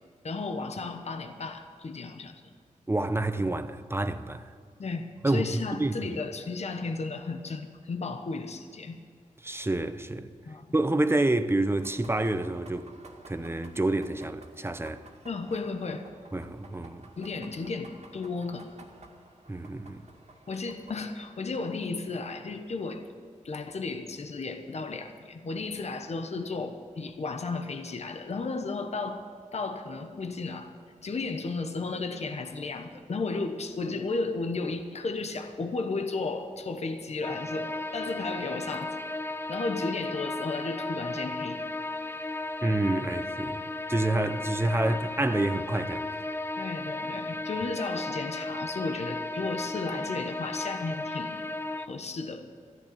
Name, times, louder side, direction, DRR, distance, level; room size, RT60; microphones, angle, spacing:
voice 1, 0.2-2.5 4.8-9.0 10.5-10.6 15.2-16.1 17.2-18.9 20.5-23.1 23.4-29.2 29.5-30.7 31.0-39.0 39.5-41.6 46.6-51.5 51.8-52.5, left 3 dB, 55° left, 1.1 m, -34 dB
voice 2, 2.9-4.4 5.2-6.1 9.4-10.3 10.7-12.9 13.3-15.0 16.3-17.0 19.5-20.0 42.6-43.6 43.9-46.0, right 2 dB, 20° right, 0.8 m, -28 dB
sound 1, 11.8-21.2, right 2 dB, 55° right, 2.2 m, -53 dB
sound 2, 37.2-51.9, left 2 dB, 20° left, 0.7 m, -35 dB
14.0 x 10.5 x 8.6 m
wide cardioid pair, 80°, 13 cm